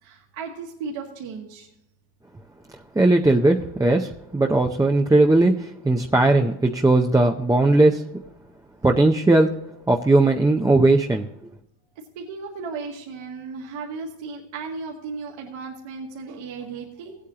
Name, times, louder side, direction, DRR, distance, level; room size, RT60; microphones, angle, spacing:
voice 1, 0.0-1.7 12.2-17.2, right 4 dB, 75° right, -2 dB, 2.0 m, -35 dB
voice 2, 2.9-8.0 8.8-9.5 9.9-11.3, right 2 dB, 10° right, 2 dB, 0.4 m, -18 dB
17.0 x 8.5 x 2.9 m, 0.83 s
cardioid pair, 130°, 47 cm